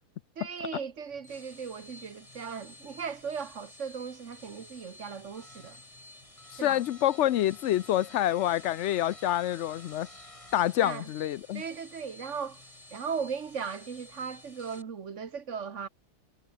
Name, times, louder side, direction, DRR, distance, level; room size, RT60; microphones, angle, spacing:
voice 1, 0.4-5.8 6.6-6.8 10.8-11.1 11.5-12.6 12.9-15.9, right 6 dB, 50° right, 1.6 m, -37 dB
sound 1, 1.1-14.8, left 1 dB, 20° left, 3.3 m, -51 dB
voice 2, 6.5-10.1 10.5-11.6, left 13 dB, 75° left, 0.6 m, -27 dB
omnidirectional pair, 1.8 m